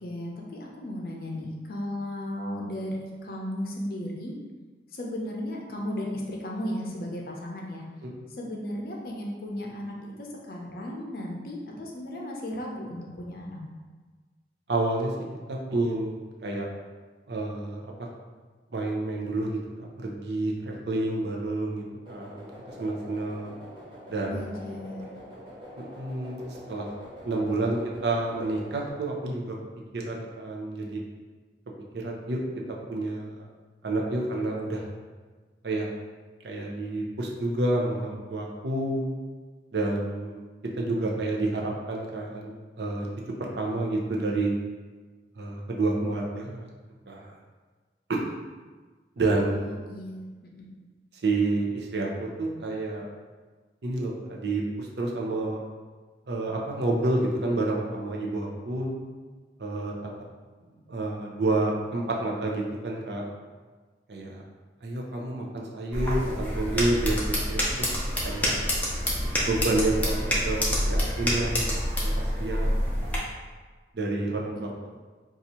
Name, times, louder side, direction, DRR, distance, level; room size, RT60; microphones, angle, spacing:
voice 1, 0.0-4.3 4.9-7.8 8.3-13.6 24.3-25.1 49.5-50.7, left 1 dB, 55° left, -1 dB, 0.6 m, -35 dB
voice 2, 14.7-15.1 15.5-16.7 17.3-18.1 18.7-23.5 24.1-24.4 25.8-26.4 26.7-26.9 27.2-29.6 29.9-31.0 31.9-32.4 32.7-33.5 33.8-34.8 35.6-35.9 36.4-39.1 39.7-40.4 40.8-43.1 43.4-44.5 45.4-46.7 47.1-47.3 48.1-48.2 49.2-49.7 51.2-53.1 53.8-55.6 56.3-59.0 59.6-60.1 60.9-63.2 64.1-64.4 64.8-68.0 68.2-68.5 69.4-71.7 72.0-73.2 73.9-74.7, right 2 dB, 75° right, -1 dB, 0.6 m, -29 dB
sound 1, 22.0-28.9, equal, 30° right, 0.7 m, -45 dB
sound 2, 65.9-73.2, equal, 10° left, 0.5 m, -27 dB
2.7 x 2.4 x 4.2 m, 1.4 s
head